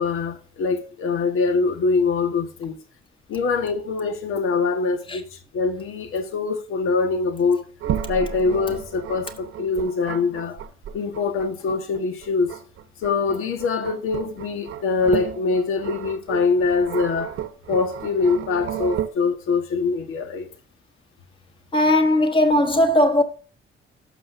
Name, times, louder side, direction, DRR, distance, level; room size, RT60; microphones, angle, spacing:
voice 1, 0.0-2.8 3.3-7.6 8.1-10.6 10.9-12.6 13.0-17.3 17.7-20.5, left 4 dB, 80° left, 1.5 m, -23 dB
sound 1, 7.8-19.1, right 10 dB, 90° right, 1.1 m, -33 dB
voice 2, 21.7-23.2, left 1 dB, 25° left, 1.2 m, -18 dB
17.5 x 6.5 x 2.6 m
cardioid pair, 165°, 21 cm